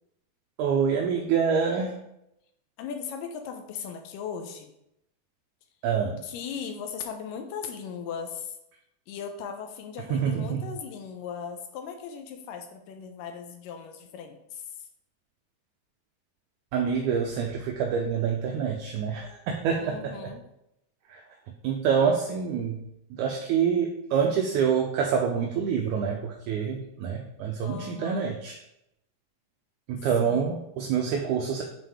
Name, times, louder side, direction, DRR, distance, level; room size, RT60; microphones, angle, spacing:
voice 1, 0.6-2.0 5.8-6.2 10.1-10.6 16.7-20.3 21.1-21.2 21.6-28.6 29.9-31.6, right 7 dB, 80° right, 2 dB, 1.8 m, -26 dB
voice 2, 2.8-4.7 6.2-8.6 9.1-14.9 19.7-20.4 27.6-28.3 30.2-30.6, left 6 dB, 80° left, 5 dB, 2.2 m, -38 dB
9.2 x 4.0 x 3.4 m, 0.82 s
omnidirectional pair, 4.1 m